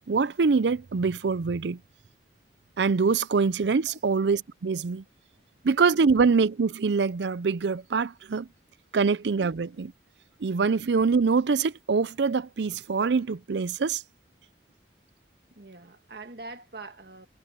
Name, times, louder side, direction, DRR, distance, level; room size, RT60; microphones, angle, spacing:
voice 1, 0.1-1.8 2.8-5.0 5.6-8.5 8.9-9.9 10.4-14.0, right 5 dB, 80° right, 0.5 m, -24 dB
voice 2, 5.3-5.7 10.2-10.3 15.6-17.3, right 3 dB, 60° right, 1.7 m, -44 dB
head